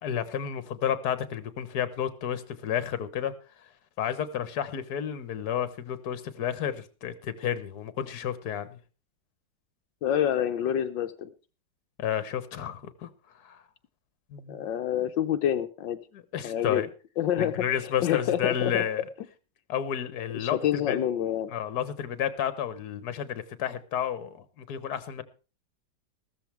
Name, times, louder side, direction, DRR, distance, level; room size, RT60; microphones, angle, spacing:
voice 1, 0.0-3.3 4.0-8.8 12.0-13.1 13.4-13.6 14.3-14.7 16.1-16.9 17.4-19.0 19.7-20.6 20.9-21.0 21.5-25.2, left 9 dB, 60° left, 13 dB, 1.7 m, -31 dB
voice 2, 10.0-11.3 14.5-16.0 16.4-16.9 17.2-18.8 20.4-21.5, left 10 dB, 80° left, 7 dB, 1.5 m, -27 dB
15.0 x 13.5 x 3.4 m, 0.35 s
omnidirectional pair, 2.0 m